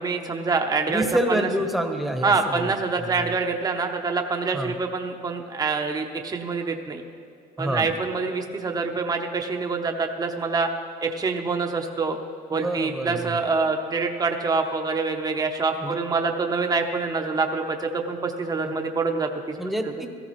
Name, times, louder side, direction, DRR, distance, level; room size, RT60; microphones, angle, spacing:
voice 1, 0.0-1.5 2.2-7.0 7.6-10.7 11.0-12.2 12.5-19.6, right 4 dB, 20° right, 3 dB, 0.8 m, -26 dB
voice 2, 0.9-3.3 4.5-4.8 7.6-7.9 12.5-13.3 15.8-16.0 18.6-18.7 19.6-20.1, right 1 dB, ahead, 5 dB, 1.0 m, -28 dB
17.0 x 13.5 x 3.1 m, 2.4 s
cardioid pair, 110°, 17 cm